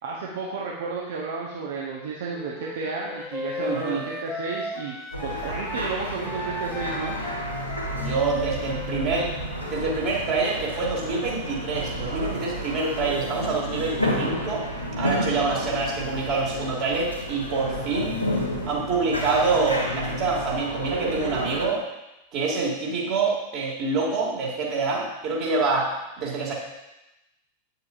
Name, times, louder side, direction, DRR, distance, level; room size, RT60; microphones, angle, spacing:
voice 1, 0.0-5.0 5.2-7.2, right 4 dB, 55° right, -2 dB, 0.9 m, -32 dB
Wind instrument woodwind instrument, 2.3-5.9 6.2-10.0, left 2 dB, 15° left, 0.7 m, -36 dB
voice 2, 3.6-4.0 7.9-9.3 9.7-14.6 15.0-18.1 18.6-21.8 22.3-26.5, right 4 dB, 40° right, -3 dB, 2.0 m, -26 dB
sound 1, 5.1-21.7, equal, 90° left, 1.3 m, -31 dB
8.7 x 6.8 x 2.5 m, 0.96 s
figure-of-eight pair, 90°, 0 cm